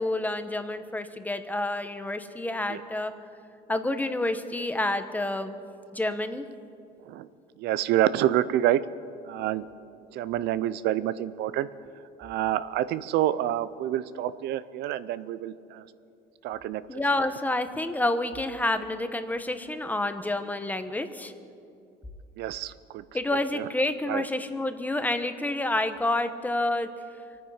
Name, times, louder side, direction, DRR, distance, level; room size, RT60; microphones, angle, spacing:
voice 1, 0.0-3.1 3.7-5.6 5.9-6.4 16.9-21.3 23.1-26.9, left 2 dB, 10° left, 9 dB, 1.0 m, -28 dB
voice 2, 7.6-8.8 9.3-9.6 10.1-11.7 12.2-15.8 16.4-17.0 22.4-22.7 23.5-23.6 24.1-24.2, right 13 dB, 85° right, 16 dB, 0.6 m, -27 dB
25.0 x 9.4 x 5.7 m, 2.7 s
cardioid pair, 110°, 17 cm